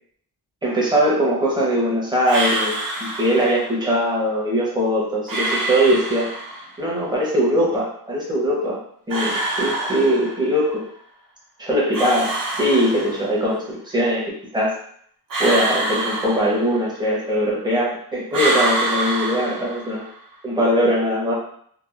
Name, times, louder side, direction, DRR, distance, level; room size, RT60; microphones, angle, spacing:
voice 1, 0.6-6.3 6.8-8.8 9.1-10.8 11.6-14.3 14.5-14.7 15.4-20.0 20.4-21.3, equal, 10° right, -5 dB, 0.8 m, -21 dB
sound 1, 2.3-3.8 5.3-6.8 9.1-10.6 11.9-13.5 15.3-17.0 18.3-20.2, right 2 dB, 60° right, 0.9 m, -26 dB
2.8 x 2.4 x 2.4 m, 0.64 s
wide cardioid pair, 145°, 39 cm